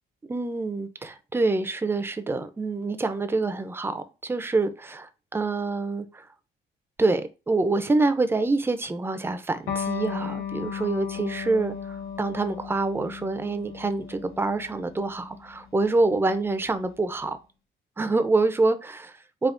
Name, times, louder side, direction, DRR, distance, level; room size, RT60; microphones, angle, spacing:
voice 1, 0.3-6.3 7.0-17.4 18.0-19.5, right 3 dB, 10° right, 0.4 m, -26 dB
Electric guitar, 9.7-16.8, left 7 dB, 90° left, 0.9 m, -36 dB
3.4 x 2.4 x 2.5 m
cardioid pair, 90°, 20 cm